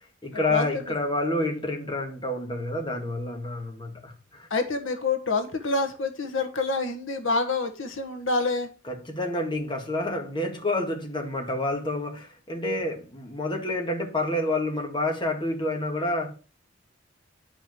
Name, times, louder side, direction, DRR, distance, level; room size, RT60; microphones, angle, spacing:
voice 1, 0.2-4.5 8.8-16.3, left 2 dB, 25° left, 1.6 m, -28 dB
voice 2, 4.5-8.7, left 3 dB, 80° left, 1.4 m, -27 dB
10.0 x 5.2 x 6.0 m
head